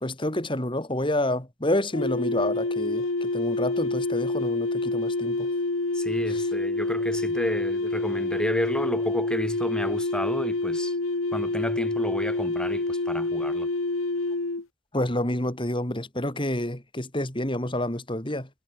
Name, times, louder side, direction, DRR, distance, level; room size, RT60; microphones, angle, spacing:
voice 1, 0.0-5.5 6.3-6.4 14.9-18.5, left 1 dB, 25° left, 3.0 m, -28 dB
sound 1, 1.9-14.6, left 2 dB, 70° left, 1.4 m, -27 dB
voice 2, 5.9-11.0 11.3-13.7, equal, 5° left, 5.3 m, -31 dB
head